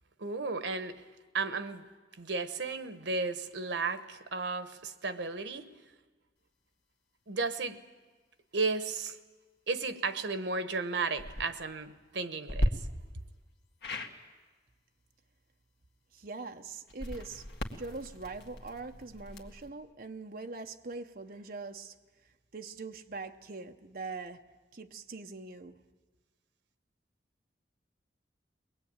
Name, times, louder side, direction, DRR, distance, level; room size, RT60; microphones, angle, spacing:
voice 1, 0.2-1.0 1.3-1.9 2.2-5.7 7.3-7.8 8.5-9.2 9.7-12.8, right 4 dB, 85° right, 1.2 m, -34 dB
sound 1, 11.1-11.5 12.5-12.7 13.8-14.1 16.9-19.7, equal, 65° left, 1.9 m, -35 dB
voice 2, 16.1-17.4 17.7-21.9 22.5-24.4 24.7-25.8, right 3 dB, 55° right, 0.8 m, -42 dB
22.5 x 20.0 x 8.9 m
head